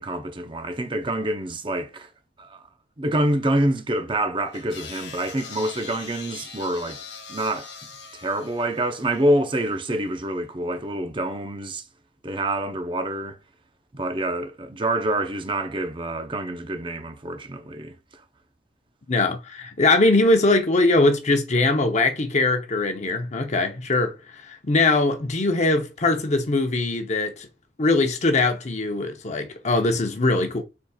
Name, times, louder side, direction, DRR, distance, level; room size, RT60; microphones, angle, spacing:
voice 1, 0.0-2.1 2.4-2.6 3.0-7.0 7.3-7.7 8.1-11.8 12.2-13.4 13.9-18.2, right 1 dB, 30° right, 0.6 m, -26 dB
sound 1, 4.5-9.9, left 5 dB, 70° left, 1.2 m, -41 dB
voice 2, 19.1-24.1 24.5-27.5 27.8-30.6, left 2 dB, 40° left, 0.8 m, -21 dB
4.6 x 4.2 x 2.3 m
head